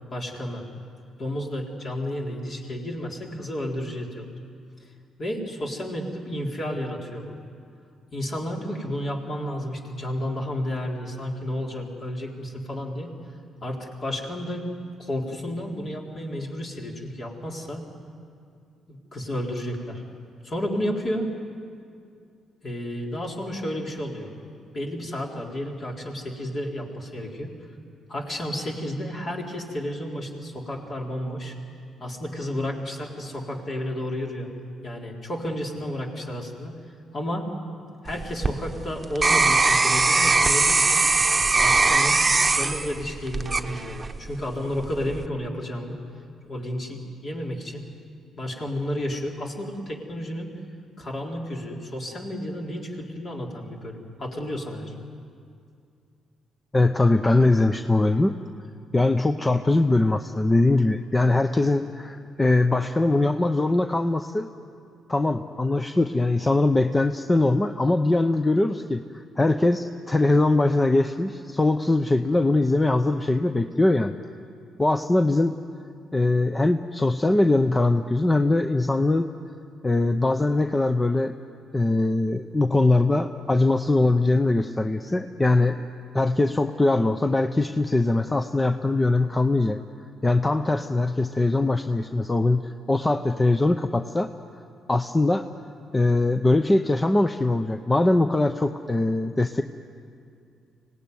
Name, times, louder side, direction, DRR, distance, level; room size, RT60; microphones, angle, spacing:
voice 1, 0.1-0.6 1.2-4.3 5.2-7.3 8.1-13.1 13.6-14.7 15.0-17.8 18.9-20.0 20.4-21.3 22.6-24.3 24.7-27.5 28.1-31.6 32.0-34.5 34.8-36.7 37.1-37.5 38.0-41.0 41.6-42.2 42.6-46.0 46.4-47.8 48.4-50.5 51.0-54.9, equal, 45° left, 0 dB, 3.9 m, -31 dB
sound 1, 38.1-44.3 44.8-45.3, right 3 dB, 20° right, 1.1 m, -21 dB
voice 2, 56.7-58.3 58.9-64.5 65.1-69.0 69.4-74.1 74.8-75.5 76.1-79.3 79.8-81.3 81.7-85.8 86.1-89.8 90.2-94.3 94.9-95.4 95.9-99.6, left 2 dB, 15° left, 8 dB, 0.7 m, -21 dB
25.0 x 18.5 x 9.5 m, 2.4 s
cardioid pair, 90°, 0 cm